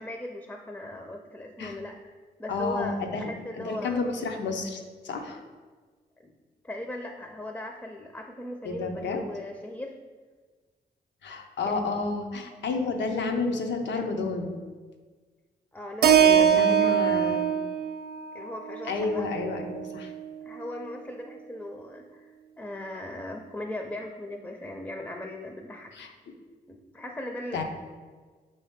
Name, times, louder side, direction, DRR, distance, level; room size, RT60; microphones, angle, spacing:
voice 1, 0.0-2.1 2.4-4.0 6.2-6.3 6.6-9.9 11.7-11.8 15.7-17.0 18.3-19.3 20.4-26.1 26.7-27.6, left 1 dB, 10° left, 3 dB, 0.4 m, -38 dB
voice 2, 2.5-3.3 3.6-5.4 8.6-9.2 11.2-14.6 16.2-17.5 18.9-20.1 25.9-26.1 27.5-27.6, left 3 dB, 80° left, 4 dB, 0.6 m, -30 dB
Keyboard (musical), 16.0-20.2, right 9 dB, 60° right, 0.4 m, -23 dB
5.3 x 2.8 x 3.5 m, 1.4 s
cardioid pair, 60°, 18 cm